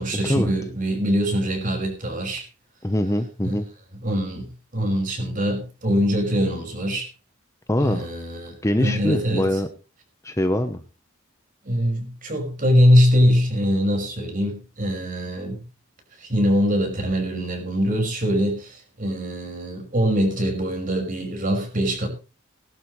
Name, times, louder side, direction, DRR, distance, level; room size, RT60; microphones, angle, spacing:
voice 1, 0.0-2.5 3.4-3.5 4.0-7.1 7.8-9.6 11.6-15.6 16.2-22.1, equal, 40° right, 3 dB, 5.6 m, -23 dB
voice 2, 2.8-3.7 7.7-8.1 8.6-9.7 10.2-10.8, left 1 dB, 15° left, 8 dB, 0.9 m, -23 dB
20.5 x 12.0 x 3.2 m, 0.33 s
head